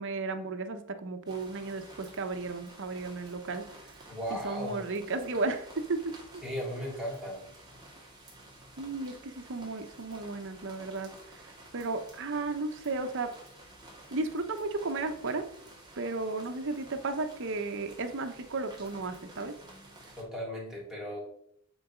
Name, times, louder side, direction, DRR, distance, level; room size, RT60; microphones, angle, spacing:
voice 1, 0.0-3.7 4.3-6.0 8.8-11.1 11.4-13.3 14.1-15.4 16.0-19.5, right 3 dB, 60° right, 7 dB, 0.8 m, -34 dB
sound 1, 1.3-20.2, right 1 dB, 20° right, 1.9 m, -52 dB
voice 2, 4.1-4.8 6.4-7.5 20.2-21.2, equal, ahead, -4 dB, 2.8 m, -36 dB
8.5 x 4.0 x 5.0 m, 0.68 s
head